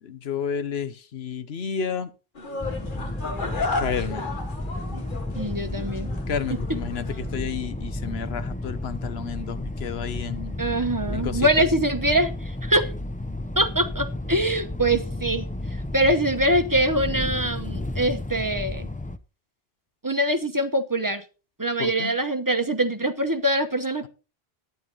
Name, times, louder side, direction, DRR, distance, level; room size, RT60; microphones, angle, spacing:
voice 1, 0.0-2.1 3.8-4.2 6.3-10.6 11.1-11.7 21.8-22.1, left 7 dB, 80° left, 1.1 m, -31 dB
sound 1, 2.3-7.3, left 3 dB, 55° left, 1.7 m, -33 dB
sound 2, 2.6-19.2, left 1 dB, 10° left, 0.5 m, -32 dB
voice 2, 5.4-6.1 10.6-12.9 13.6-15.5 15.9-18.9 20.0-21.2 21.6-24.1, right 1 dB, 20° right, 0.9 m, -23 dB
12.0 x 9.3 x 4.0 m
omnidirectional pair, 1.0 m